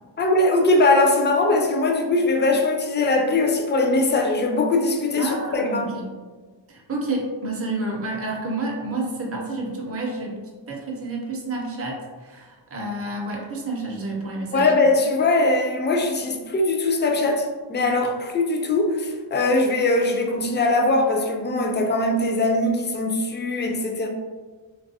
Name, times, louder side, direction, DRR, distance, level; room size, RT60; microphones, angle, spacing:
voice 1, 0.2-5.9 14.5-24.1, left 2 dB, 25° left, 2 dB, 0.3 m, -21 dB
voice 2, 5.2-6.1 6.7-10.4 10.7-14.7, right 2 dB, 30° right, -1 dB, 0.5 m, -29 dB
3.1 x 2.3 x 2.6 m, 1.4 s
wide cardioid pair, 60°, 45 cm